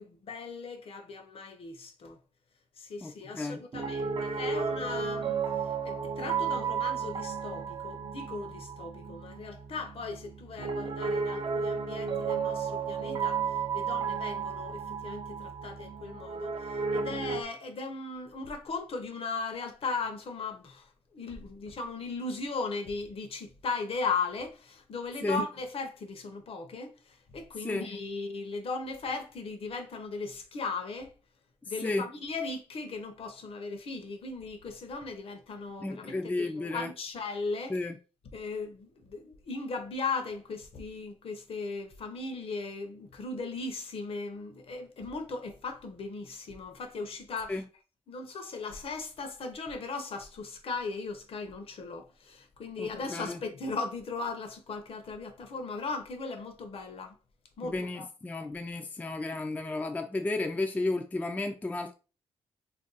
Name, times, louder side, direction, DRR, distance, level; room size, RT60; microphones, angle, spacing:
voice 1, 0.0-2.2 2.8-5.4 5.8-13.5 13.7-31.1 31.7-37.8 38.3-47.6 48.1-57.2 57.6-58.1, left 4 dB, 55° left, 0.7 m, -37 dB
voice 2, 3.0-3.6 25.2-25.4 27.6-27.9 31.8-32.1 35.8-36.9 37.7-37.9 47.5-47.6 52.8-53.4 57.6-61.9, left 2 dB, 15° left, 0.3 m, -33 dB
Piano, 3.7-17.4, right 6 dB, 45° right, 0.5 m, -33 dB
2.5 x 2.2 x 3.9 m
cardioid pair, 115°, 11 cm